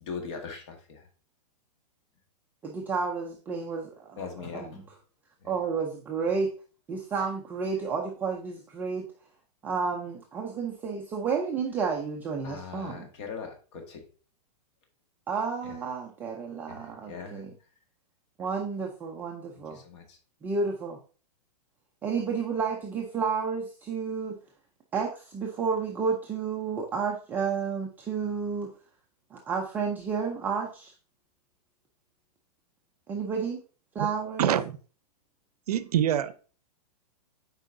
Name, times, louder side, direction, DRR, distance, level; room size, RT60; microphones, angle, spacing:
voice 1, 0.0-1.0 4.2-4.9 12.4-14.0 15.6-15.8 16.7-17.4 19.8-20.0, left 5 dB, 45° left, 1.7 m, -40 dB
voice 2, 2.6-5.0 5.4-6.5 6.9-9.1 9.6-13.1 15.3-17.5 18.4-19.8 20.4-21.0 22.0-24.4 24.9-28.7 29.3-30.9 33.1-33.6 33.9-34.5, right 5 dB, 10° right, 0.4 m, -31 dB
voice 3, 34.4-34.7 35.7-36.3, right 10 dB, 70° right, 0.6 m, -25 dB
8.1 x 4.6 x 2.6 m
hypercardioid pair, 165°, 20 cm